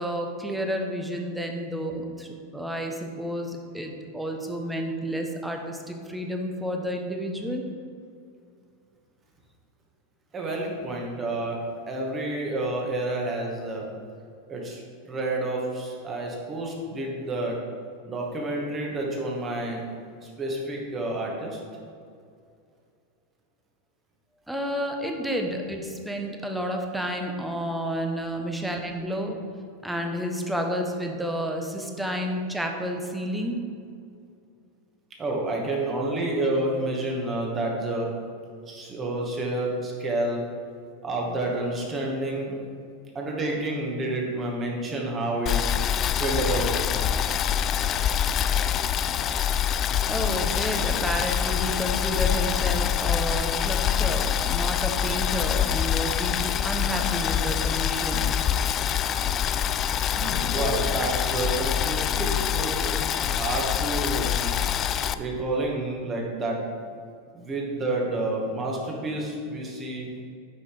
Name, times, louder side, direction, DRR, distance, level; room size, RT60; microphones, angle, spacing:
voice 1, 0.0-7.7 24.5-29.4 29.8-33.6 50.1-58.3 60.6-60.8, equal, 5° right, 3 dB, 1.2 m, -30 dB
voice 2, 10.3-13.9 14.5-14.8 15.1-17.6 18.1-19.8 20.2-21.6 35.2-38.1 38.7-40.4 41.0-42.6 43.1-45.7 46.2-46.8 60.1-64.5 65.1-66.6 67.3-70.2, right 2 dB, 25° right, -1 dB, 2.2 m, -29 dB
Boiling, 45.5-65.1, left 9 dB, 35° left, 0.4 m, -25 dB
9.4 x 5.9 x 5.0 m, 2.4 s
figure-of-eight pair, 90°, 0 cm